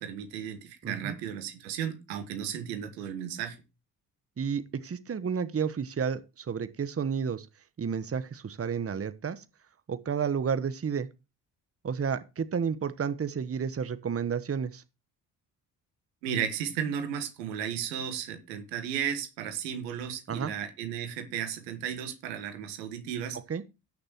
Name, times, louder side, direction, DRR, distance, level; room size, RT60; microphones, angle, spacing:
voice 1, 0.0-3.6 16.2-23.4, right 8 dB, 80° right, 1.7 m, -34 dB
voice 2, 0.8-1.1 4.4-7.5 7.8-9.4 9.9-11.1 11.8-14.8 20.3-20.5 23.5-23.6, right 6 dB, 30° right, 1.1 m, -31 dB
17.5 x 6.6 x 3.0 m
hypercardioid pair, 45°, 49 cm